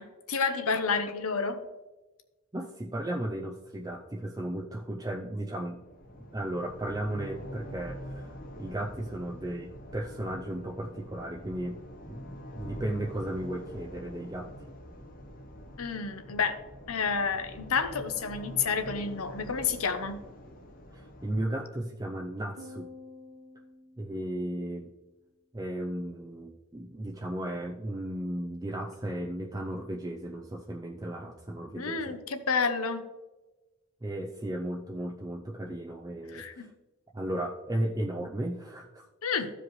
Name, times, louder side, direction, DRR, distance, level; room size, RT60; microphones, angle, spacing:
voice 1, 0.0-1.6 15.8-16.6 16.9-20.2 31.8-33.0 36.3-36.7 39.2-39.5, left 5 dB, 75° left, 9 dB, 0.8 m, -30 dB
voice 2, 2.5-5.8 6.2-11.8 12.1-14.5 20.9-22.9 24.0-24.9 25.5-32.2 34.0-36.7 37.1-39.1, right 1 dB, 15° right, 0 dB, 0.4 m, -35 dB
sound 1, 5.8-21.5, equal, 40° left, 0.8 m, -45 dB
sound 2, 22.6-25.0, left 2 dB, 55° right, 1.3 m, -50 dB
15.0 x 5.0 x 3.1 m, 1.1 s
head